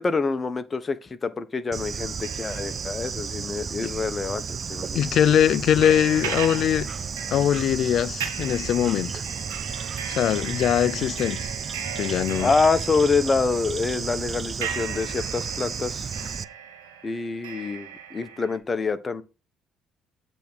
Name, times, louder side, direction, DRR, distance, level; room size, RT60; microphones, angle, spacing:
voice 1, 0.0-4.4 4.7-5.0 12.4-16.1 17.0-19.2, left 4 dB, 35° left, 0.9 m, -26 dB
Bird / Insect, 1.7-16.4, right 6 dB, 45° right, 0.5 m, -33 dB
sound 1, 2.0-4.1 4.5-4.6 5.8-18.6, right 8 dB, 90° right, 1.0 m, -38 dB
voice 2, 4.9-6.9 7.3-9.1 10.1-11.4 12.0-12.5, left 10 dB, 65° left, 0.4 m, -22 dB
8.2 x 3.6 x 6.1 m
hypercardioid pair, 55°, 0 cm